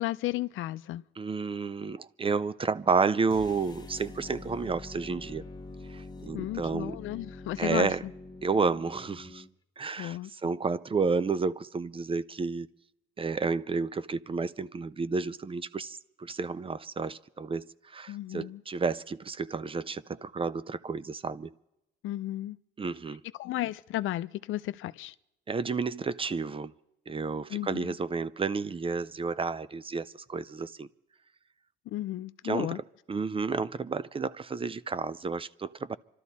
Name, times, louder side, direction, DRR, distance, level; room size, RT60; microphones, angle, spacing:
voice 1, 0.0-1.0 6.3-7.9 10.0-10.3 18.1-18.6 22.0-22.6 23.4-25.1 27.5-27.9 31.9-32.8, left 15 dB, 80° left, 0.5 m, -33 dB
voice 2, 1.2-5.4 5.9-7.0 7.6-8.0 8.4-9.4 9.8-12.7 13.2-21.5 22.8-23.2 25.5-26.7 27.1-30.9 32.4-36.0, right 4 dB, 25° right, 0.5 m, -31 dB
sound 1, 3.3-9.5, left 3 dB, 20° left, 1.1 m, -45 dB
26.5 x 12.5 x 4.2 m
cardioid pair, 90°, 20 cm